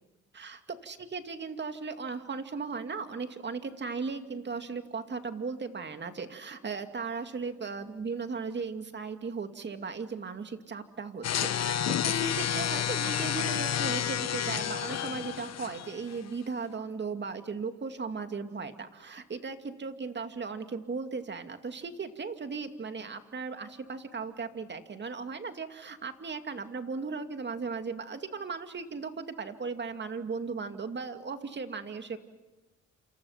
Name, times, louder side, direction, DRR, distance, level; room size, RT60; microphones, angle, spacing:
voice 1, 0.3-32.2, right 4 dB, 35° right, 7 dB, 2.4 m, -37 dB
sound 1, 11.2-16.2, left 10 dB, 60° left, 1.3 m, -30 dB
28.5 x 28.0 x 5.8 m, 1.2 s
cardioid pair, 90°, 30 cm